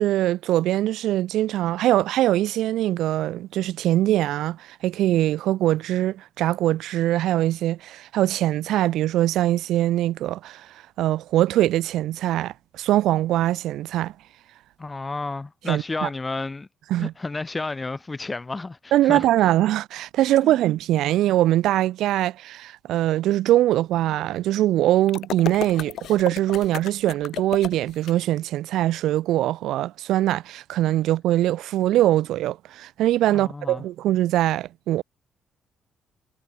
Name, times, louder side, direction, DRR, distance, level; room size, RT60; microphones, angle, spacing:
voice 1, 0.0-14.1 15.7-16.1 16.9-17.1 18.9-35.0, right 14 dB, 85° right, 0.3 m, -22 dB
voice 2, 14.8-16.7 16.9-19.5 20.3-20.6 33.3-33.8, left 3 dB, 20° left, 1.1 m, -32 dB
sound 1, 25.1-28.1, left 11 dB, 75° left, 0.7 m, -33 dB
cardioid pair, 90°, 0 cm